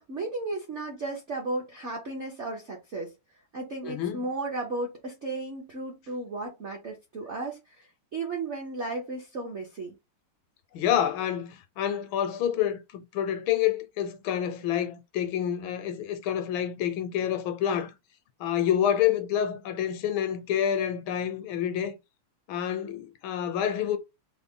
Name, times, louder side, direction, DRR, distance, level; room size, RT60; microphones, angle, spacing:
voice 1, 0.0-3.1 3.5-9.9, right 2 dB, 60° right, 0.7 m, -34 dB
voice 2, 3.9-4.2 10.7-17.9 18.4-22.0 22.5-24.0, left 10 dB, 75° left, 1.3 m, -28 dB
3.8 x 2.1 x 3.6 m
omnidirectional pair, 2.4 m